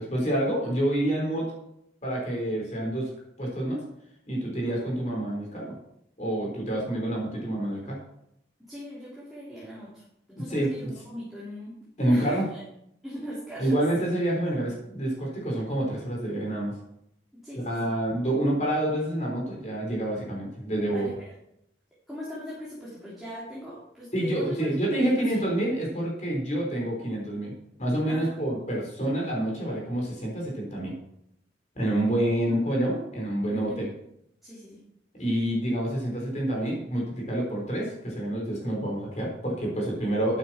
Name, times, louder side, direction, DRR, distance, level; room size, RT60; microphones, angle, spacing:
voice 1, 0.0-1.5 2.0-3.1 3.4-3.8 4.3-5.7 6.2-8.0 10.5-10.9 12.0-12.4 13.6-16.7 17.5-21.1 24.1-27.5 27.8-30.9 31.8-33.9 35.2-40.4, right 1 dB, 40° left, -2 dB, 4.3 m, -28 dB
voice 2, 8.7-10.0 10.3-12.6 13.0-13.8 17.4-17.9 20.9-21.3 22.1-24.5 24.9-25.4 28.1-28.4 33.5-33.9 34.4-34.8, equal, ahead, -9 dB, 3.3 m, -40 dB
12.0 x 9.3 x 4.4 m, 0.77 s
head